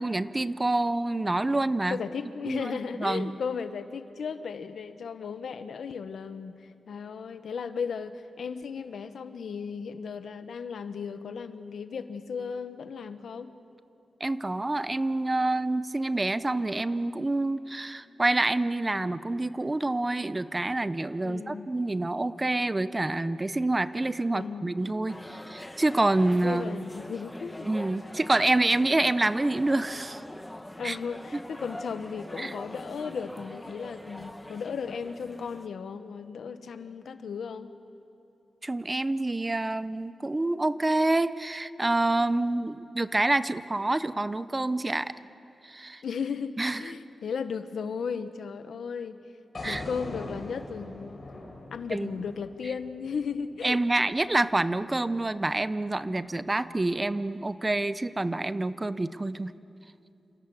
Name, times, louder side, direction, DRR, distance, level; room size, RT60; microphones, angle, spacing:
voice 1, 0.0-2.0 2.5-3.3 14.2-26.9 27.6-30.2 30.8-31.0 32.4-32.5 38.6-45.1 45.6-46.0 46.6-46.8 49.6-49.8 51.9-52.1 53.6-59.5, right 2 dB, 15° right, 13 dB, 0.6 m, -27 dB
voice 2, 1.9-13.5 21.2-21.7 24.3-24.7 26.4-27.7 30.8-37.7 46.0-49.2 49.6-51.2 51.7-53.8, left 6 dB, 85° left, 10 dB, 1.2 m, -35 dB
sound 1, 25.1-35.7, left 1 dB, 10° left, 1.0 m, -43 dB
sound 2, 49.5-53.7, left 2 dB, 35° left, 5.1 m, -41 dB
28.5 x 27.5 x 7.2 m, 2.7 s
wide cardioid pair, 175°, 0 cm